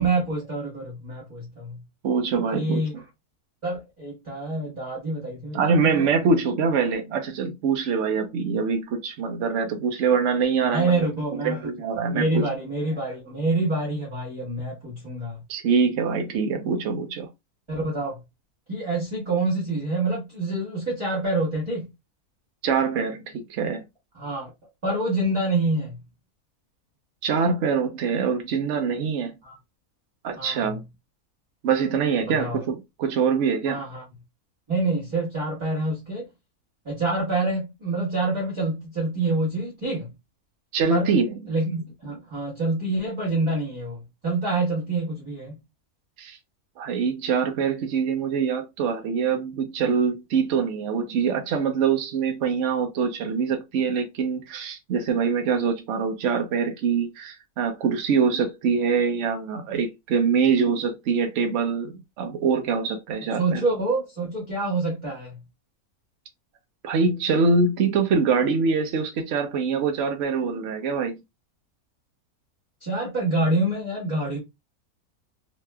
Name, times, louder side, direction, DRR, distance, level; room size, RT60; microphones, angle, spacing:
voice 1, 0.0-1.8 2.5-2.9 3.6-6.1 10.7-11.7 12.1-15.4 17.7-18.2 18.7-21.9 24.1-24.5 24.8-26.0 29.4-29.6 30.4-30.8 32.3-32.6 33.7-34.0 34.7-36.3 36.8-40.1 40.9-41.1 41.5-45.5 63.4-65.4 72.8-74.4, right 2 dB, 20° right, 1.3 m, -26 dB
voice 2, 2.0-2.8 5.5-11.1 11.4-12.5 15.5-17.3 22.6-23.8 27.2-29.3 30.2-30.8 31.6-33.8 40.7-41.3 46.2-46.4 46.8-63.6 66.8-71.2, right 5 dB, 60° right, 0.9 m, -24 dB
3.0 x 2.8 x 2.2 m
omnidirectional pair, 1.6 m